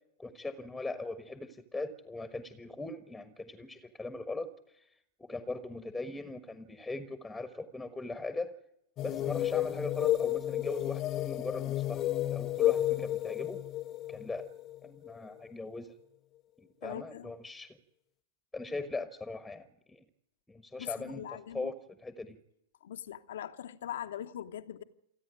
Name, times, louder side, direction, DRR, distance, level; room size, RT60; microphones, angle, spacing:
voice 1, 0.2-4.8 5.2-8.6 9.0-13.6 14.1-14.5 14.8-15.9 16.8-17.8 18.5-20.0 20.5-22.4, left 2 dB, 5° left, 1.4 m, -40 dB
sound 1, 9.0-15.4, left 13 dB, 35° left, 0.7 m, -32 dB
voice 2, 16.8-17.3 20.8-21.7 22.8-24.8, left 10 dB, 65° left, 1.0 m, -41 dB
28.5 x 9.7 x 9.5 m
figure-of-eight pair, 95°, 0 cm